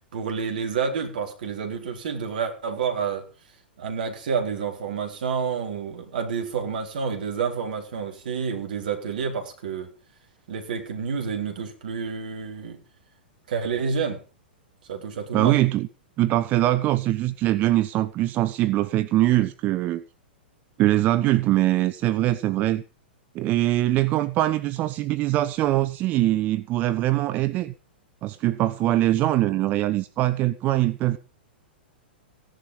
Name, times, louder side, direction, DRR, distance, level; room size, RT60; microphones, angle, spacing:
voice 1, 0.1-3.3 3.8-9.9 10.5-12.8 13.5-14.2 14.9-15.6, right 6 dB, 55° right, 3.8 m, -29 dB
voice 2, 15.3-15.9 16.2-20.0 20.8-22.8 23.3-27.7 28.2-31.2, right 15 dB, 30° right, 0.7 m, -22 dB
16.0 x 11.0 x 5.4 m
figure-of-eight pair, 100°, 6 cm